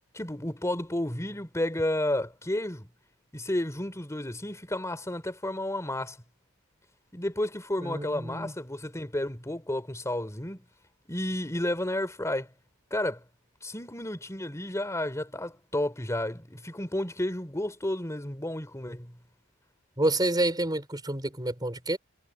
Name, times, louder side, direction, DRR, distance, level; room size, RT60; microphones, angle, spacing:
voice 1, 0.1-2.9 3.3-6.2 7.1-10.6 11.1-12.5 12.9-13.2 13.6-19.1, left 1 dB, 15° left, 3.5 m, -31 dB
voice 2, 7.8-8.5 20.0-22.0, right 1 dB, 20° right, 4.5 m, -28 dB
head